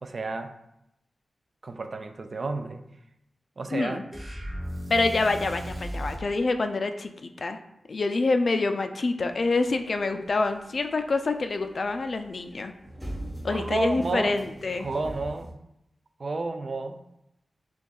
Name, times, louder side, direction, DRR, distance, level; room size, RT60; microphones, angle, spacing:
voice 1, 0.0-0.5 1.6-2.8 3.6-4.0 13.5-14.4 14.8-15.5 16.2-17.0, right 3 dB, 50° right, 7 dB, 0.3 m, -31 dB
voice 2, 3.7-4.0 4.9-7.6 7.9-12.7 13.4-14.9, left 3 dB, 55° left, 7 dB, 0.3 m, -26 dB
sound 1, 4.1-6.3, equal, 25° right, 1.0 m, -35 dB
sound 2, 9.2-15.5, right 1 dB, 5° right, 1.0 m, -42 dB
6.2 x 2.3 x 2.3 m, 0.83 s
cardioid pair, 70°, 0 cm